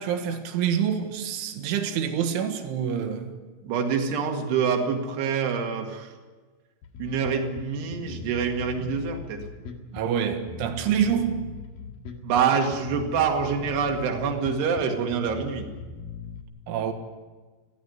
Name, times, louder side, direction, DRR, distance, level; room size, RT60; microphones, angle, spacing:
voice 1, 0.0-3.3 9.9-11.4 16.7-16.9, right 8 dB, 85° right, 4.1 m, -26 dB
voice 2, 3.6-6.1 7.0-9.5 12.2-15.7, right 6 dB, 65° right, 3.9 m, -26 dB
Bass guitar, 6.8-16.4, left 5 dB, 60° left, 3.0 m, -40 dB
20.0 x 16.0 x 9.5 m
omnidirectional pair, 5.4 m